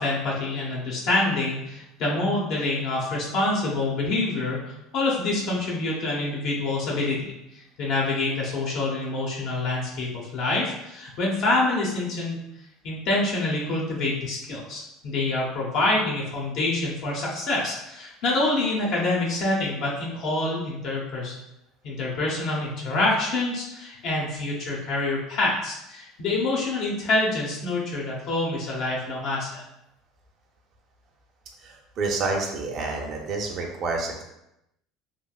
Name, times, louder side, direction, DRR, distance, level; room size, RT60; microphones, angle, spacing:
voice 1, 0.0-12.4 12.8-21.4 21.8-29.6, left 2 dB, 65° left, -3 dB, 0.8 m, -26 dB
voice 2, 31.6-34.2, right 3 dB, 55° right, 0 dB, 0.5 m, -29 dB
3.1 x 2.4 x 2.3 m, 0.86 s
supercardioid pair, 90°, 0 cm